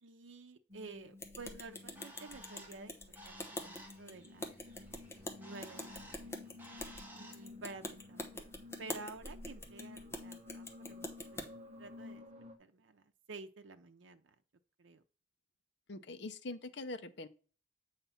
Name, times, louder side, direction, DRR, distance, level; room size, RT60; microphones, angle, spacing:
voice 1, 0.0-2.9 3.3-4.6 5.4-6.3 7.1-8.4 8.8-12.3 12.6-14.3 14.8-15.0, right 3 dB, 90° right, 0.6 m, -51 dB
sound 1, 0.7-12.6, left 3 dB, 35° right, 0.9 m, -54 dB
sound 2, 1.2-11.5, left 1 dB, 15° left, 0.9 m, -45 dB
Bird, 1.6-7.5, right 1 dB, 10° right, 1.5 m, -56 dB
voice 2, 15.9-17.3, left 2 dB, 65° left, 0.7 m, -43 dB
8.2 x 3.3 x 5.6 m
head